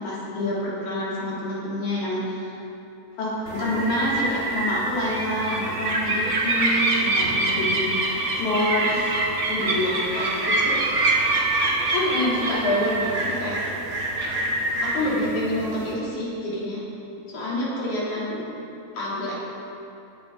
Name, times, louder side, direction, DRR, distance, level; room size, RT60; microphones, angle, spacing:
voice 1, 0.0-2.5 3.2-9.1 9.5-10.8 11.9-13.6 14.8-16.8 17.3-18.4 18.9-19.4, left 1 dB, 80° left, -7 dB, 4.5 m, -27 dB
sound 1, 3.5-15.9, right 2 dB, 85° right, 0.6 m, -25 dB
19.5 x 7.5 x 5.3 m, 2.8 s
omnidirectional pair, 3.4 m